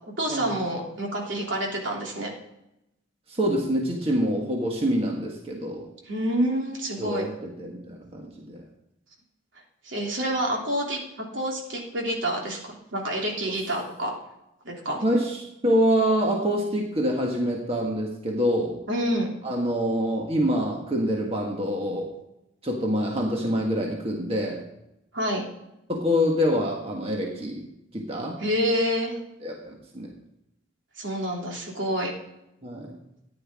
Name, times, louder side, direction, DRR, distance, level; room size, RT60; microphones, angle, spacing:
voice 1, 0.2-2.3 6.1-7.2 9.8-14.2 14.6-15.0 18.9-19.3 25.1-25.4 28.4-29.1 31.0-32.1, equal, 70° right, -1 dB, 3.1 m, -28 dB
voice 2, 3.3-5.9 7.0-7.3 7.6-8.6 15.0-18.8 19.4-22.1 22.6-24.6 25.9-27.7 27.9-28.4 29.4-30.1 32.6-33.0, equal, 30° right, 0 dB, 1.6 m, -26 dB
14.5 x 10.5 x 3.7 m, 0.85 s
head